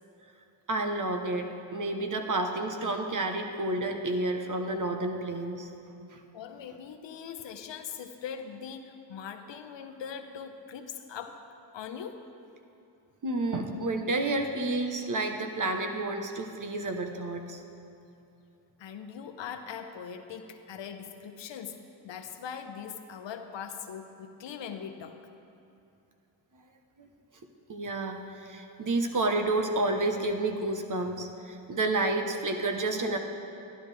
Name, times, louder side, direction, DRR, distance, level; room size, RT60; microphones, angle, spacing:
voice 1, 0.7-5.7 6.1-6.2 13.2-17.6 27.0-27.1 27.7-33.2, right 2 dB, 40° right, 5 dB, 1.1 m, -30 dB
voice 2, 6.3-11.4 11.7-12.2 18.8-21.8 22.0-25.2, left 7 dB, 65° left, 7 dB, 0.8 m, -41 dB
11.5 x 11.0 x 3.4 m, 2.7 s
supercardioid pair, 55°, 47 cm